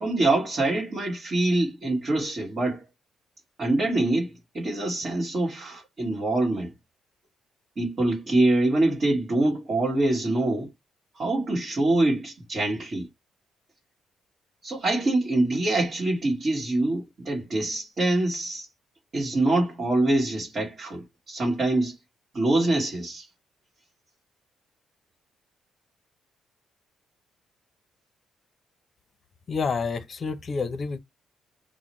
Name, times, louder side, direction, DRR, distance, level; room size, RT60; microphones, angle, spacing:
voice 1, 0.0-2.8 3.6-6.7 7.8-10.7 11.2-13.1 14.6-18.7 19.1-21.9 22.3-23.3, right 2 dB, 40° right, 1.5 m, -25 dB
voice 2, 29.5-31.0, left 5 dB, 40° left, 0.6 m, -28 dB
5.9 x 2.1 x 3.0 m
cardioid pair, 115°, 0 cm